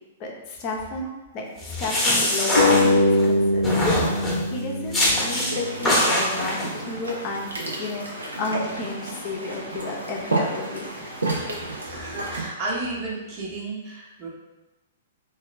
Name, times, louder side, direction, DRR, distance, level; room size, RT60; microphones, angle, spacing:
voice 1, 0.2-1.4 1.8-4.0 4.5-7.5 7.8-11.1, left 3 dB, 40° left, -1 dB, 0.6 m, -32 dB
sound 1, 1.6-3.3 3.6-4.5 4.9-5.5 5.9-6.7, left 1 dB, 10° left, 0.9 m, -23 dB
sound 2, 2.6-5.8, left 2 dB, 80° left, 0.4 m, -22 dB
sound 3, 5.5-12.5, right 2 dB, 80° right, 0.7 m, -31 dB
voice 2, 11.8-14.3, right 2 dB, 35° right, -4 dB, 0.9 m, -32 dB
3.1 x 2.6 x 3.0 m, 1.0 s
figure-of-eight pair, 110°, 0 cm